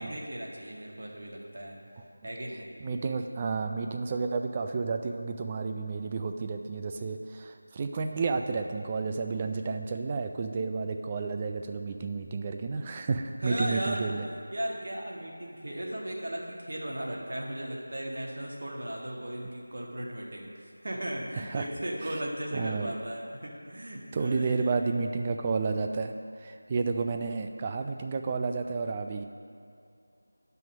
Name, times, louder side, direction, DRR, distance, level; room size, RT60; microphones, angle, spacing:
voice 1, 0.0-1.8 2.2-2.7 13.4-14.1 14.5-24.8, right 1 dB, 55° right, -2 dB, 1.6 m, -36 dB
voice 2, 2.8-14.2 21.5-21.7 22.5-22.9 24.1-26.1 26.4-29.2, right 4 dB, 20° right, 5 dB, 0.4 m, -31 dB
9.2 x 5.6 x 6.1 m, 2.4 s
figure-of-eight pair, 170°, 0 cm